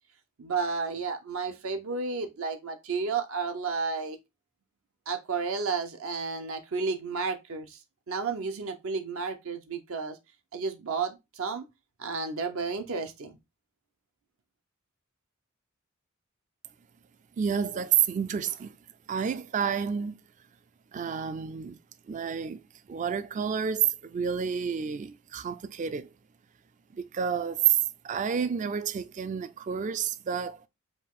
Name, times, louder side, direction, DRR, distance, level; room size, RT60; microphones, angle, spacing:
voice 1, 0.4-4.2 5.1-7.8 8.1-10.2 10.5-11.7 12.0-13.4, right 4 dB, 70° right, 0.7 m, -32 dB
voice 2, 17.4-18.8 19.1-20.2 20.9-21.8 22.1-22.6 22.9-26.1 26.9-30.7, right 8 dB, 35° right, 0.3 m, -29 dB
5.1 x 2.5 x 3.6 m
head